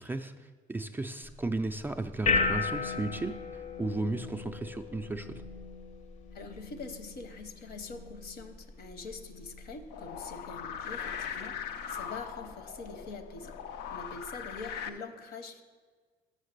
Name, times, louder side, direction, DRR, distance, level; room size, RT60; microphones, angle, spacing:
voice 1, 0.0-5.4, right 2 dB, 10° right, 6 dB, 0.3 m, -35 dB
sound 1, 1.2-14.8, left 4 dB, 45° left, 0.6 m, -37 dB
voice 2, 6.3-13.6 13.9-15.6, left 3 dB, 65° left, 9 dB, 0.9 m, -44 dB
sound 2, 9.9-14.9, left 8 dB, 85° left, 0.5 m, -40 dB
6.6 x 6.4 x 6.5 m, 1.5 s
cardioid pair, 110°, 17 cm